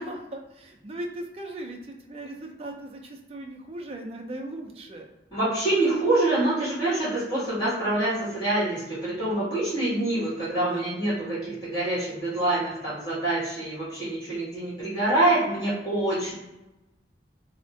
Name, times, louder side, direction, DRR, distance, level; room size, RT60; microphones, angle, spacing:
voice 1, 0.1-5.1 10.6-10.9, right 1 dB, 30° right, 2 dB, 0.4 m, -38 dB
voice 2, 5.3-16.3, right 2 dB, 25° left, -11 dB, 1.5 m, -26 dB
3.4 x 2.1 x 2.6 m, 0.95 s
head